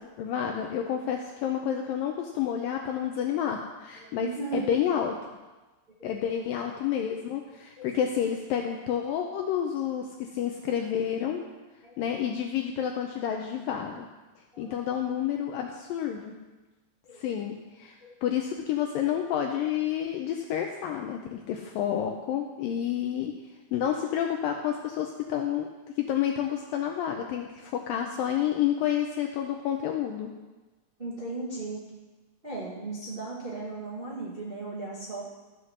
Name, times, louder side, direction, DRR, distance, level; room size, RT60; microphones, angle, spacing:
voice 1, 0.2-5.1 6.0-11.4 12.0-14.1 14.6-16.3 17.2-18.0 18.2-23.4 23.7-25.7 26.0-30.3, left 9 dB, 85° left, 3 dB, 2.1 m, -29 dB
voice 2, 4.0-4.7 6.0-6.1 7.8-7.9 8.9-9.0 11.8-11.9 14.5-14.7 17.0-17.2 18.0-18.1 31.0-31.8 32.4-35.3, right 3 dB, 25° right, -6 dB, 1.1 m, -36 dB
13.0 x 5.8 x 6.4 m, 1.2 s
omnidirectional pair, 4.7 m